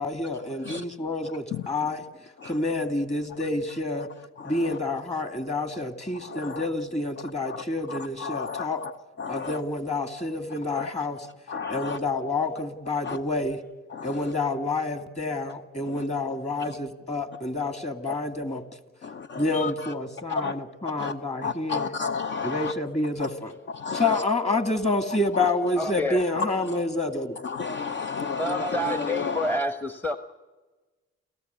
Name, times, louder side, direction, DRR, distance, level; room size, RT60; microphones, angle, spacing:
voice 1, 0.0-2.0 2.4-4.1 4.4-8.8 9.3-11.3 11.7-13.6 14.0-18.6 19.4-22.0 22.4-23.5 23.9-27.4, left 2 dB, 20° left, 7 dB, 2.4 m, -28 dB
voice 2, 8.3-8.7 9.2-9.4 11.5-12.0 13.1-13.2 19.3-19.4 20.4-20.5 21.0-21.1 21.4-22.6 23.8-24.0 27.6-28.7, left 5 dB, 35° left, 9 dB, 0.8 m, -31 dB
voice 3, 25.8-26.2 28.3-30.2, left 1 dB, 5° left, 9 dB, 1.1 m, -28 dB
29.5 x 14.5 x 8.2 m, 1.3 s
hypercardioid pair, 55°, 31 cm